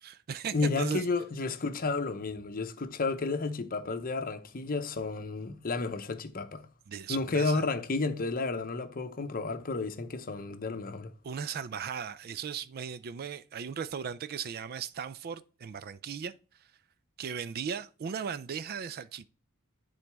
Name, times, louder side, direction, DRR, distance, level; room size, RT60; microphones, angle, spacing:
voice 1, 0.0-1.0 6.9-7.6 11.2-16.3 17.2-19.3, right 7 dB, 45° right, 0.3 m, -37 dB
voice 2, 0.5-6.6 7.1-11.1, left 3 dB, 40° left, 0.7 m, -32 dB
10.5 x 3.9 x 3.4 m
head